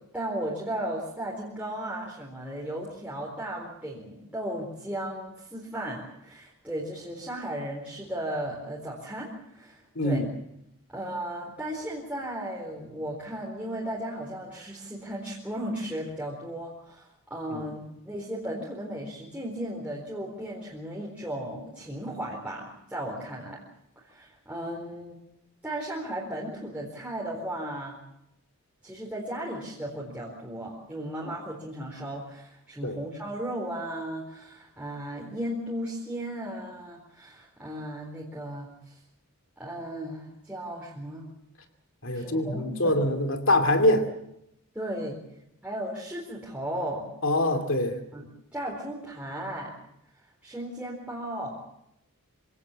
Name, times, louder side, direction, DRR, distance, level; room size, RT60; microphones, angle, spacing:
voice 1, 0.1-10.2 10.9-23.6 24.0-25.2 25.6-28.0 28.8-39.0 39.6-41.3 42.1-43.0 44.7-45.2 45.6-47.1 48.1-48.3 48.5-49.7 50.4-51.6, right 1 dB, 5° right, -5 dB, 4.1 m, -35 dB
voice 2, 9.9-10.3 17.5-17.6 32.8-33.0 42.0-44.1 47.2-48.0, left 1 dB, 60° left, 7 dB, 2.7 m, -24 dB
26.5 x 17.5 x 7.5 m, 0.81 s
head